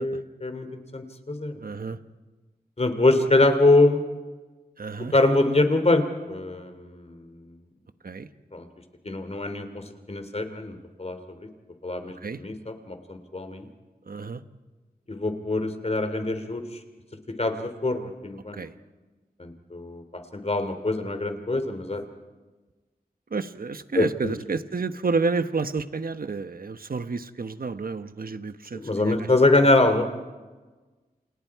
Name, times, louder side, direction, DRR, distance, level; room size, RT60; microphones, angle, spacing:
voice 1, 0.0-1.6 2.8-4.1 5.1-7.6 8.5-8.7 9.0-11.5 11.8-13.7 15.1-16.8 17.4-18.6 19.4-22.0 23.9-24.3 28.7-30.0, left 2 dB, 40° left, 8 dB, 2.8 m, -24 dB
voice 2, 1.6-2.0 4.8-5.1 8.0-8.3 12.2-12.4 14.1-14.4 18.5-18.7 23.3-29.3, right 4 dB, 65° right, 10 dB, 1.2 m, -30 dB
29.0 x 28.0 x 4.8 m, 1.3 s
wide cardioid pair, 70°, 16 cm